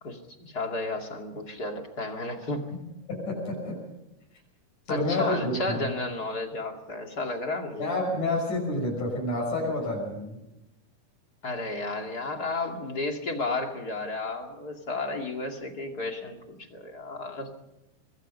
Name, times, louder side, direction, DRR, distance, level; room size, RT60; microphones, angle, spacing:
voice 1, 0.0-2.7 4.9-7.9 11.4-17.5, left 2 dB, 30° left, 3 dB, 2.5 m, -33 dB
voice 2, 3.1-3.8 4.9-5.8 7.8-10.4, left 2 dB, 70° left, 0 dB, 7.4 m, -29 dB
25.5 x 21.0 x 5.5 m, 0.90 s
omnidirectional pair, 3.7 m